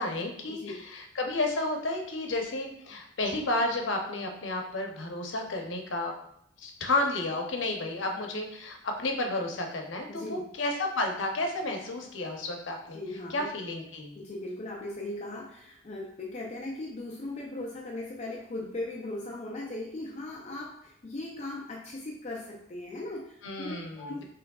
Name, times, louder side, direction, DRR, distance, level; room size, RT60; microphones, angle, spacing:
voice 1, 0.0-6.1 6.6-13.0 13.3-14.1 23.4-24.2, left 2 dB, 75° left, 3 dB, 0.8 m, -32 dB
voice 2, 10.1-10.5 12.9-13.5 14.2-24.2, left 2 dB, 35° left, -1 dB, 0.5 m, -38 dB
5.9 x 3.2 x 2.3 m, 0.73 s
head